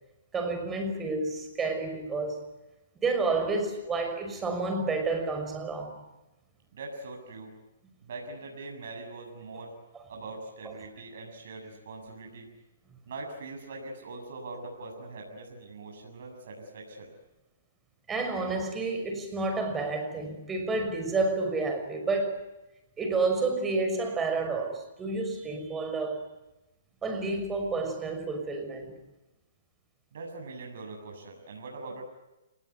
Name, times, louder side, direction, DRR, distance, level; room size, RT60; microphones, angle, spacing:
voice 1, 0.3-2.4 3.0-6.0 18.1-22.4 23.0-26.3 27.0-28.9, right 3 dB, 15° right, 6 dB, 5.9 m, -30 dB
voice 2, 6.7-7.5 8.0-9.7 10.1-12.5 13.1-17.1 30.1-32.0, right 3 dB, 65° right, 1 dB, 7.3 m, -42 dB
29.0 x 19.5 x 9.5 m, 0.98 s
hypercardioid pair, 135°, 0 cm